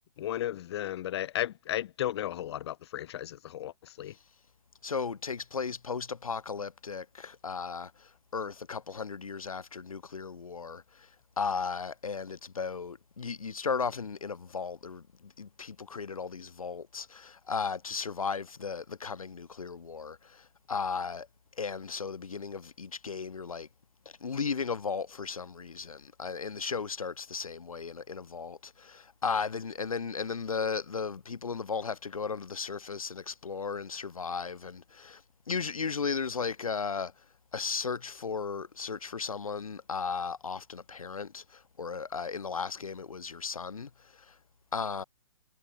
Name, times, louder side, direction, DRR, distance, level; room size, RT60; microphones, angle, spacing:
voice 1, 0.2-4.1, left 12 dB, 50° left, 1.6 m, -34 dB
voice 2, 4.8-11.1 11.4-21.3 21.6-23.7 24.2-35.2 35.5-37.1 37.5-44.3 44.7-45.0, left 5 dB, 85° left, 3.0 m, -35 dB
hypercardioid pair, 140°, 18 cm